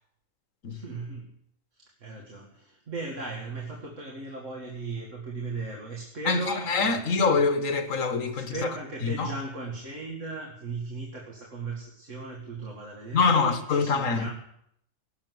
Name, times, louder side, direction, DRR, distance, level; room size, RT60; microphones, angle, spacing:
voice 1, 0.7-1.3 1.7-7.3 8.3-14.3, right 3 dB, 70° right, 2.6 m, -37 dB
voice 2, 6.3-8.7 9.0-9.3 13.1-14.3, left 4 dB, 80° left, 1.8 m, -25 dB
17.5 x 7.4 x 9.6 m
omnidirectional pair, 1.3 m